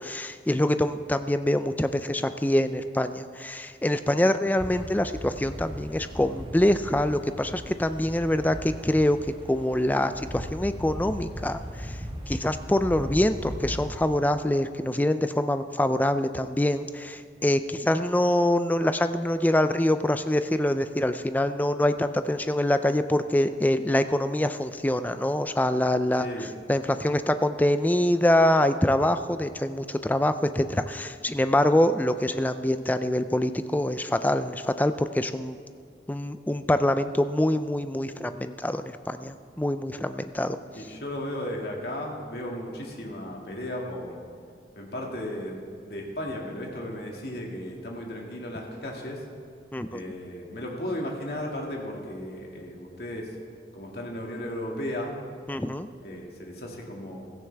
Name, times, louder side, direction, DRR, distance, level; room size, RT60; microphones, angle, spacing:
voice 1, 0.0-9.2 9.5-12.0 12.3-35.6 36.1-40.6 49.7-50.0 55.5-55.9, left 1 dB, 10° left, 10 dB, 0.4 m, -25 dB
sound 1, 4.6-14.0, equal, 30° right, 1.5 m, -38 dB
voice 2, 26.2-26.5 40.7-44.2 44.8-49.2 49.9-53.3 53.7-55.2 56.0-57.3, left 1 dB, 60° left, -1 dB, 2.1 m, -35 dB
16.0 x 14.0 x 3.4 m, 2.2 s
head